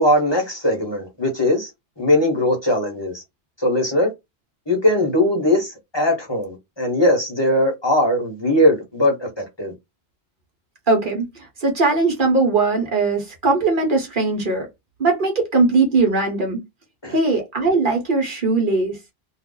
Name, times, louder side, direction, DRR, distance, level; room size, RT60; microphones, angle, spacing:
voice 1, 0.0-1.7 2.0-3.2 3.6-4.1 4.7-9.7 17.0-17.1, left 1 dB, 25° left, 1.0 m, -20 dB
voice 2, 10.9-14.7 15.0-16.6 17.1-19.0, right 3 dB, 55° right, 1.1 m, -20 dB
2.5 x 2.3 x 3.7 m
omnidirectional pair, 1.0 m